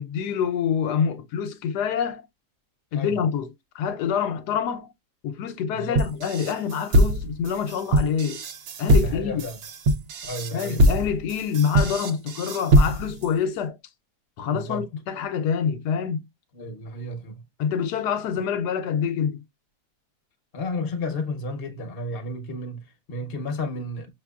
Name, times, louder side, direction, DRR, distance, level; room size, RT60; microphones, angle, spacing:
voice 1, 0.0-2.3 2.9-4.9 5.2-8.4 8.8-9.4 10.5-13.8 14.4-16.2 17.6-19.4, left 7 dB, 80° left, 1.2 m, -26 dB
voice 2, 5.7-6.1 9.0-9.6 10.2-10.8 14.5-14.9 16.5-17.4 20.5-24.1, left 2 dB, 45° left, 0.9 m, -32 dB
sound 1, 5.9-13.2, equal, 65° right, 0.7 m, -22 dB
5.9 x 2.8 x 2.3 m
omnidirectional pair, 1.8 m